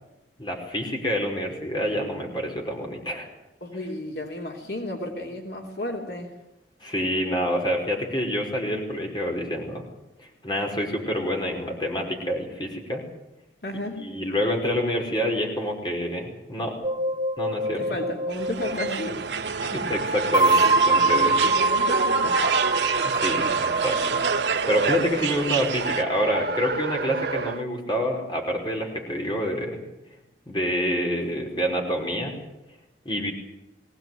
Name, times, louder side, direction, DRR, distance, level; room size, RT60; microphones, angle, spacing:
voice 1, 0.4-3.3 6.8-9.8 10.2-13.0 14.0-16.8 17.4-17.8 19.6-21.5 23.0-29.8 30.5-32.3 33.1-33.3, equal, 25° left, 1 dB, 5.2 m, -27 dB
voice 2, 3.6-6.3 13.6-14.1 17.7-19.2 21.0-22.4, left 1 dB, 65° left, 1 dB, 3.4 m, -33 dB
sound 1, 16.8-19.1 20.3-24.6, right 3 dB, 25° right, 1.3 m, -24 dB
sound 2, 18.3-26.0, right 6 dB, 85° right, 1.3 m, -29 dB
Race car auto racing, 18.4-27.6, right 4 dB, 65° right, 0.8 m, -30 dB
21.5 x 18.0 x 9.4 m, 0.93 s
head